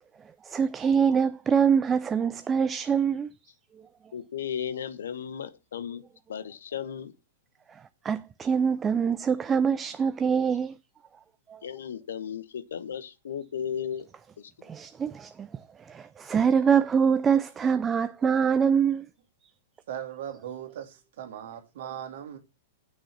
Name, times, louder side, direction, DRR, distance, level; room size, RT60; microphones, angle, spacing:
voice 1, 0.4-3.3 8.0-10.7 11.5-11.6 14.6-15.5 15.9-19.0, right 7 dB, 20° right, 0.5 m, -24 dB
voice 2, 4.1-6.0 6.3-7.1 11.6-14.1 14.4-14.7, left 8 dB, 65° left, 1.1 m, -35 dB
voice 3, 19.9-22.4, right 10 dB, 55° right, 2.3 m, -39 dB
8.7 x 6.4 x 5.9 m
figure-of-eight pair, 100°, 0 cm